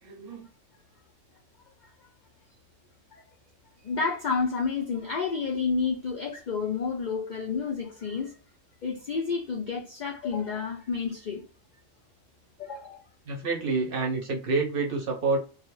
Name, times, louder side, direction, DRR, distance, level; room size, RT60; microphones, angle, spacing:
voice 1, 0.0-0.5 13.3-15.4, right 3 dB, 55° right, 0.7 m, -28 dB
voice 2, 3.8-8.3 8.8-11.4 12.6-13.0, left 5 dB, 80° left, 0.4 m, -30 dB
2.3 x 2.0 x 3.0 m
omnidirectional pair, 1.4 m